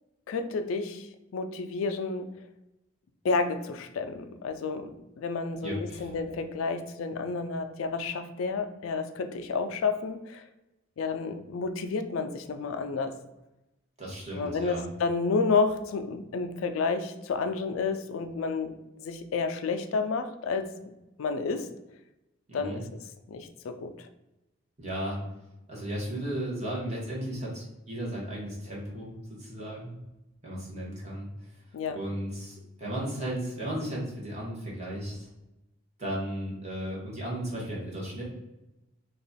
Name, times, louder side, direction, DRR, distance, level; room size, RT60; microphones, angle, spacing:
voice 1, 0.3-1.1 1.3-2.3 3.2-10.4 11.0-13.1 14.3-18.7 19.0-20.7 21.2-21.7 22.5-22.8 23.3-24.1 31.7-32.0, left 4 dB, 80° left, 8 dB, 0.4 m, -30 dB
voice 2, 5.6-6.1 14.0-14.9 22.5-22.8 24.8-25.2 25.7-29.1 29.4-29.9 30.4-31.3 31.9-35.3 36.0-38.2, right 1 dB, 35° right, -5 dB, 1.2 m, -35 dB
3.0 x 2.4 x 3.9 m, 0.95 s
head